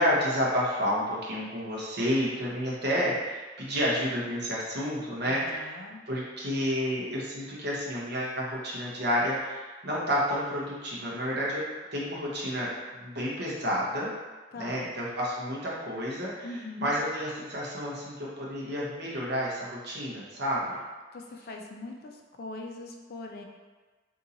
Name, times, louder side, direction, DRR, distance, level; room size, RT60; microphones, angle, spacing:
voice 1, 0.0-5.7 6.1-11.6 11.9-12.7 13.0-14.1 14.6-20.7, equal, 65° right, -5 dB, 0.9 m, -30 dB
voice 2, 5.3-6.1 14.5-14.9 16.4-16.9 21.1-22.1 22.4-23.4, left 2 dB, 55° left, 2 dB, 0.4 m, -41 dB
2.8 x 2.7 x 3.8 m, 1.3 s
head